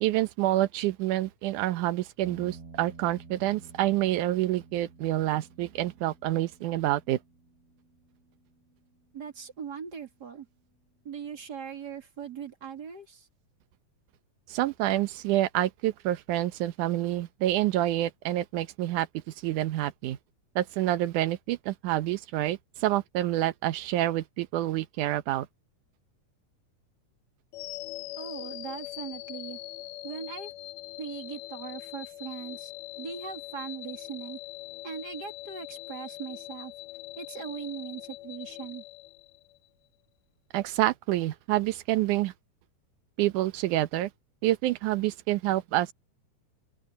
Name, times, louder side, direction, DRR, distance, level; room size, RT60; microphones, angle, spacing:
voice 1, 0.0-7.2 14.5-19.1 19.4-20.2 20.6-25.5 40.5-42.3 43.2-44.1 44.4-45.9, right 15 dB, 75° right, 2.4 m, -27 dB
sound 1, 2.2-10.6, right 4 dB, 50° right, 4.0 m, -52 dB
voice 2, 9.1-10.5 11.0-13.3 28.2-29.6 30.0-30.5 31.0-32.7 33.0-34.4 34.8-36.7 37.2-38.8, right 7 dB, 35° right, 2.7 m, -40 dB
sound 2, 27.5-39.7, left 17 dB, 90° left, 2.3 m, -42 dB
open air
omnidirectional pair, 3.6 m